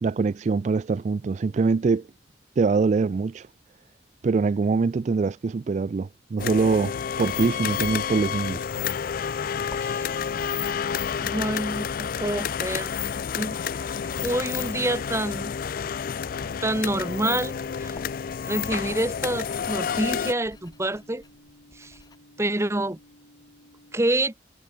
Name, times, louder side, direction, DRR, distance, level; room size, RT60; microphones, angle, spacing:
voice 1, 0.0-2.1 2.6-3.5 4.2-8.7, right 4 dB, 40° right, 0.3 m, -24 dB
sound 1, 6.4-20.3, left 7 dB, 50° left, 0.4 m, -29 dB
Writing, 7.2-22.2, left 1 dB, 20° left, 4.9 m, -53 dB
sound 2, 9.2-24.0, equal, 85° left, 6.3 m, -51 dB
voice 2, 11.2-12.9 13.3-13.6 14.2-15.5 16.6-17.5 17.8-18.0 18.5-21.2 21.8-21.9 22.4-23.0 23.9-24.3, right 1 dB, 15° right, 1.0 m, -27 dB
head